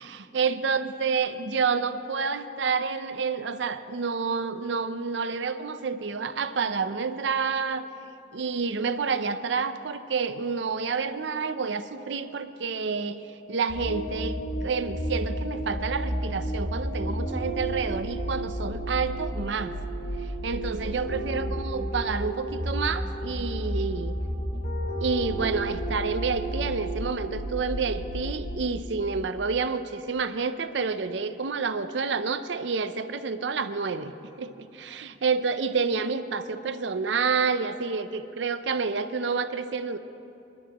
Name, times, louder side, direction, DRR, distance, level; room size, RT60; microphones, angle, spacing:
voice 1, 0.0-7.9 8.3-13.2 13.5-19.7 20.2-24.1 25.0-40.0, right 5 dB, 75° right, 11 dB, 0.6 m, -29 dB
sound 1, 13.7-28.8, equal, 50° left, 3.8 m, -32 dB
26.5 x 11.5 x 3.0 m, 2.8 s
head